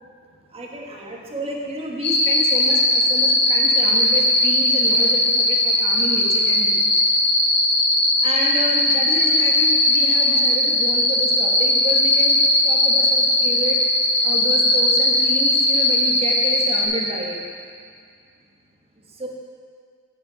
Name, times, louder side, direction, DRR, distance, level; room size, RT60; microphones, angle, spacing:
voice 1, 0.5-6.8 8.2-12.4 12.6-13.8 14.2-17.4 19.2-19.3, right 1 dB, 25° right, -2 dB, 1.4 m, -30 dB
sound 1, 2.0-16.9, left 1 dB, 50° left, 1.7 m, -18 dB
9.5 x 7.4 x 5.2 m, 2.2 s
head